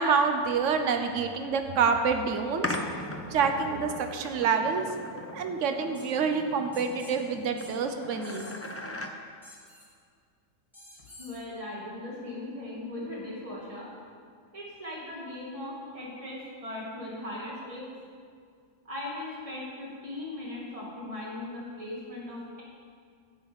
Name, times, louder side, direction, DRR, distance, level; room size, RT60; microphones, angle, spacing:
voice 1, 0.0-2.7 3.3-4.8 5.3-8.5, right 5 dB, 55° right, 6 dB, 1.2 m, -27 dB
sound 1, 2.6-9.1, left 2 dB, 20° left, 0.3 m, -39 dB
sound 2, 5.9-6.1 6.7-7.1 7.6-7.7 8.2-8.7 9.4-9.9 10.7-11.4, left 1 dB, ahead, 2.3 m, -50 dB
voice 2, 11.2-13.9 14.5-17.9 18.8-22.6, left 1 dB, 20° right, -5 dB, 2.5 m, -38 dB
12.0 x 5.7 x 8.7 m, 2.1 s
omnidirectional pair, 1.6 m